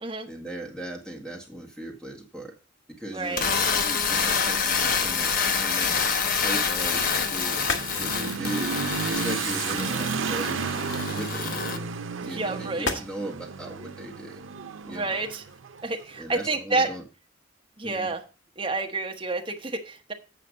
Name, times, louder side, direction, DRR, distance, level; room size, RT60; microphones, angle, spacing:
voice 1, 0.3-2.5 3.0-6.0 6.3-7.7 7.9-8.8 9.1-10.7 11.1-11.9 12.2-14.5 14.8-15.3 16.2-17.0 17.8-18.1, right 1 dB, 5° left, 1 dB, 1.7 m, -38 dB
voice 2, 3.1-3.4 12.3-12.9 14.9-15.4 15.8-16.9 17.8-18.2 18.6-20.1, right 3 dB, 25° right, 3 dB, 1.0 m, -29 dB
sound 1, 3.2-11.8, left 5 dB, 45° left, 0.8 m, -27 dB
Motorcycle / Accelerating revving vroom, 4.2-16.4, right 5 dB, 85° right, 0.6 m, -34 dB
sound 2, 6.2-15.6, left 3 dB, 70° left, 1.5 m, -40 dB
8.2 x 5.7 x 5.2 m, 0.33 s
head